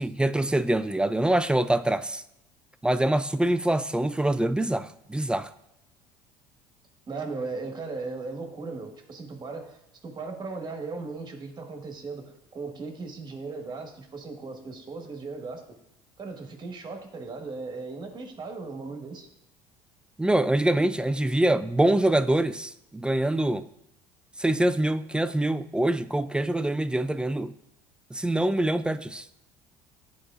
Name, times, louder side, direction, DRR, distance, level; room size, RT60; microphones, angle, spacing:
voice 1, 0.0-2.2 2.8-5.5 20.2-23.7 24.4-27.5 28.1-29.2, right 1 dB, 5° right, 13 dB, 0.3 m, -24 dB
voice 2, 7.1-15.6 16.2-19.3, right 3 dB, 35° right, 3 dB, 1.5 m, -37 dB
11.5 x 4.0 x 2.5 m, 0.81 s
hypercardioid pair, 75°, 13 cm